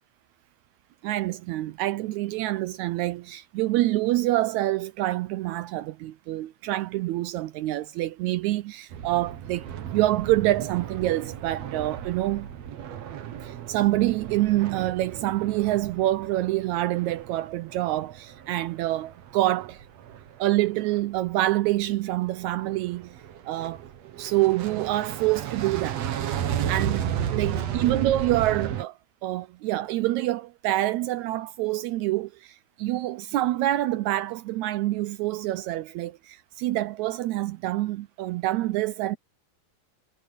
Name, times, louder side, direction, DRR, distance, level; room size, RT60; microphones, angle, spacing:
voice 1, 1.0-12.5 13.4-19.8 20.4-23.2 23.5-23.8 24.2-26.0 26.7-39.2, right 16 dB, 85° right, 1.7 m, -26 dB
sound 1, 8.9-21.2 21.6-21.9 22.2-28.8, right 9 dB, 60° right, 2.3 m, -34 dB
omnidirectional pair, 3.8 m